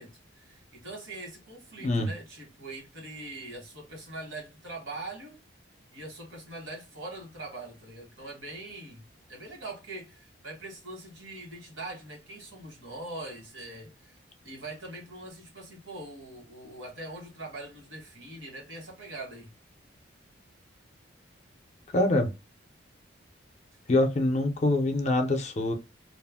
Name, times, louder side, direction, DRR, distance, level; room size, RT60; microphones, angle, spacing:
voice 1, 0.0-5.4 5.9-14.2 14.4-19.5, right 2 dB, 80° right, 1.2 m, -42 dB
voice 2, 21.9-22.3 23.9-25.7, left 2 dB, 35° left, 0.4 m, -24 dB
2.4 x 2.0 x 3.4 m
head